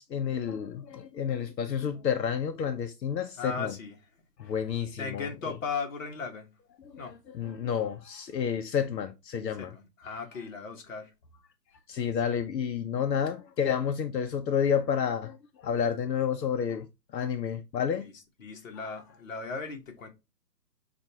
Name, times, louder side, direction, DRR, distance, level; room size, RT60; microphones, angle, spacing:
voice 1, 0.0-3.7 4.4-5.6 6.8-9.7 11.9-16.9 17.1-18.1, left 8 dB, 80° left, 0.8 m, -30 dB
voice 2, 3.4-4.0 4.4-4.5 5.0-6.5 7.0-7.2 9.6-11.1 18.0-18.1 18.4-20.1, left 5 dB, 50° left, 1.2 m, -37 dB
6.1 x 2.6 x 2.8 m
hypercardioid pair, 170°, 49 cm